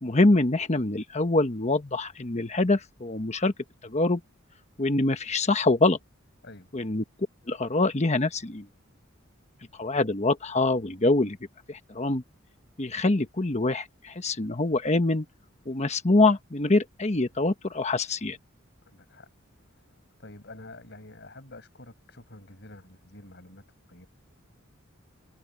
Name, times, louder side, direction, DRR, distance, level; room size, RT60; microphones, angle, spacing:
voice 1, 0.0-3.5 3.8-4.2 4.8-6.0 6.7-7.0 7.5-8.7 9.8-11.4 11.7-12.2 12.8-15.2 15.7-18.4, left 2 dB, 35° left, 1.1 m, -24 dB
voice 2, 18.9-19.3 19.6-23.6 23.9-24.1, left 2 dB, 55° left, 6.0 m, -48 dB
open air
head